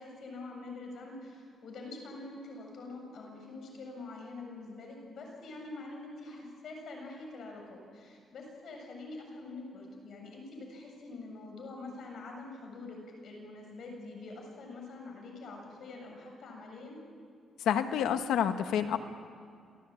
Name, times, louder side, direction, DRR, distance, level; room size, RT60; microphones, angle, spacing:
voice 1, 0.0-17.0, left 2 dB, 65° left, 1 dB, 7.4 m, -45 dB
voice 2, 17.6-19.0, left 9 dB, 90° left, 8 dB, 1.5 m, -28 dB
28.0 x 18.0 x 8.8 m, 2.3 s
cardioid pair, 105°, 0 cm